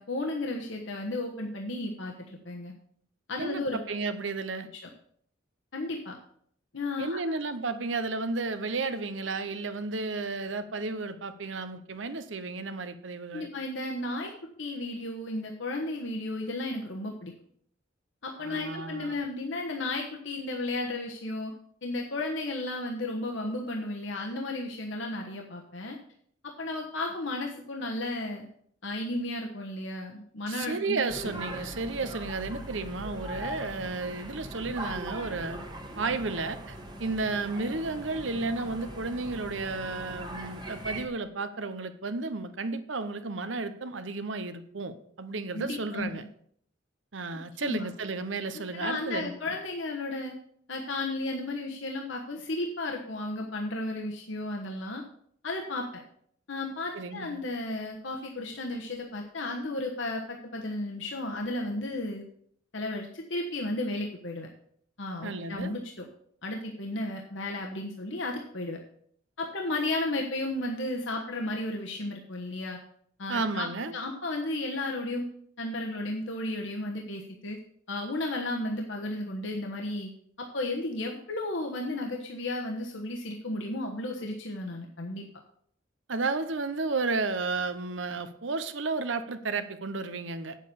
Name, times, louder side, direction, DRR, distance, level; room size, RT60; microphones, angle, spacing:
voice 1, 0.0-2.7 3.3-3.8 5.7-6.1 6.7-7.2 13.3-14.3 14.6-17.3 18.2-21.5 21.8-26.0 26.4-28.5 28.8-31.3 45.5-46.3 47.3-47.9 48.5-50.4 50.7-55.0 55.4-55.9 56.5-62.2 62.7-64.5 65.0-66.0 66.4-68.8 69.4-72.8 73.2-73.7 73.9-75.3 75.6-77.6 77.9-80.1 80.4-85.2, left 2 dB, 70° left, 1 dB, 1.3 m, -34 dB
voice 2, 3.4-4.7 7.0-13.5 18.4-19.2 30.5-35.6 36.0-46.2 47.1-49.3 56.9-57.4 65.2-65.7 73.3-73.9 86.1-90.6, right 3 dB, 70° right, 11 dB, 0.9 m, -33 dB
sound 1, 31.1-41.0, right 1 dB, 20° right, 1.4 m, -40 dB
8.5 x 7.5 x 6.9 m, 0.64 s
head